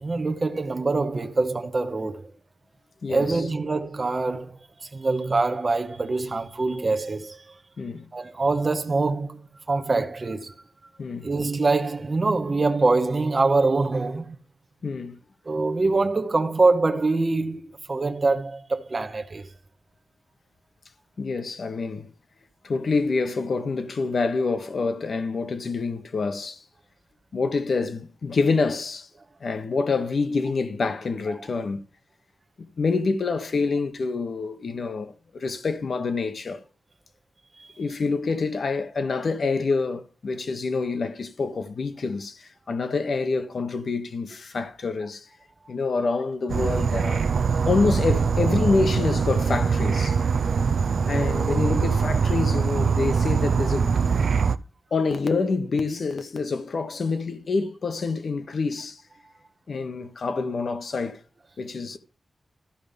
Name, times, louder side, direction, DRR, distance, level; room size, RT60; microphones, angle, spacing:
voice 1, 0.0-2.3 3.1-7.6 8.1-9.4 9.7-10.5 11.2-14.4 15.5-19.5 37.6-37.7 50.1-50.2, right 3 dB, 30° right, 0.9 m, -24 dB
voice 2, 3.0-3.4 7.8-8.1 11.0-11.3 14.8-15.2 21.2-22.1 22.6-26.6 27.3-29.1 29.4-31.8 32.6-36.6 37.8-45.3 45.7-47.3 47.6-50.2 51.1-53.9 54.9-59.0 59.7-61.2 61.6-62.0, left 4 dB, 55° left, 1.2 m, -27 dB
Insect / Frog, 46.5-54.6, right 5 dB, 65° right, 0.5 m, -23 dB
13.0 x 5.5 x 5.2 m
wide cardioid pair, 160°, 0 cm